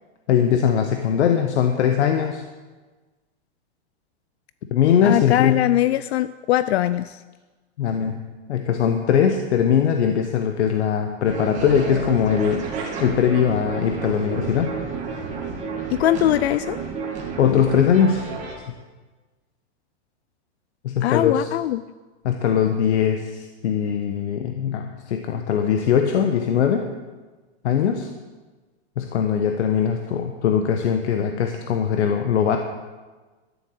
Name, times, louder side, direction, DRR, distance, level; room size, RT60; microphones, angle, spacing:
voice 1, 0.3-2.4 4.7-5.7 7.8-8.2 8.5-12.6 13.0-14.7 17.4-18.2 20.8-21.5 22.2-26.9 27.6-28.1 29.0-32.6, left 8 dB, 90° left, 5 dB, 1.2 m, -21 dB
voice 2, 5.0-7.2 15.9-16.8 21.0-21.8, left 13 dB, 75° left, 15 dB, 0.5 m, -21 dB
sound 1, 11.2-18.5, right 5 dB, 20° right, 2.1 m, -30 dB
12.5 x 7.3 x 8.0 m, 1.3 s
supercardioid pair, 170°, 33 cm